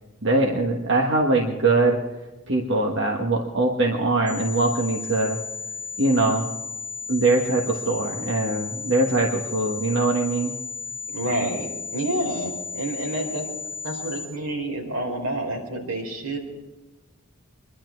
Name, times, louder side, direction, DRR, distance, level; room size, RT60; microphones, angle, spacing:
voice 1, 0.2-2.0 2.5-5.4 6.0-6.5 7.1-10.5, right 2 dB, 55° right, 0 dB, 1.5 m, -22 dB
sound 1, 4.3-14.3, left 5 dB, 10° left, 6.2 m, -34 dB
voice 2, 11.1-13.5 13.8-16.4, right 1 dB, 75° right, 0 dB, 4.7 m, -28 dB
24.5 x 11.5 x 4.7 m, 1.1 s
head